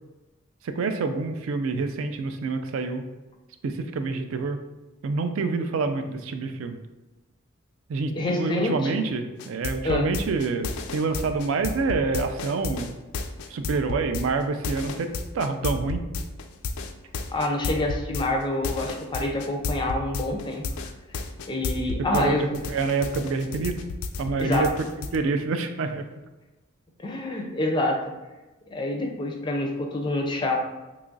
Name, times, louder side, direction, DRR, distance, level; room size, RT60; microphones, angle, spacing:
voice 1, 0.6-3.0 3.6-4.6 5.0-6.8 7.9-13.0 13.5-16.0 22.1-23.7 24.2-24.7 25.1-26.0, right 4 dB, 70° right, 8 dB, 0.3 m, -27 dB
voice 2, 8.2-9.0 9.8-10.0 17.3-20.6 21.5-22.4 24.4-24.7 27.0-28.0 28.7-30.6, left 1 dB, 20° left, 1 dB, 0.4 m, -27 dB
sound 1, 9.4-22.3 22.5-25.2, left 4 dB, 90° left, 0.3 m, -32 dB
2.9 x 2.4 x 3.8 m, 1.1 s
head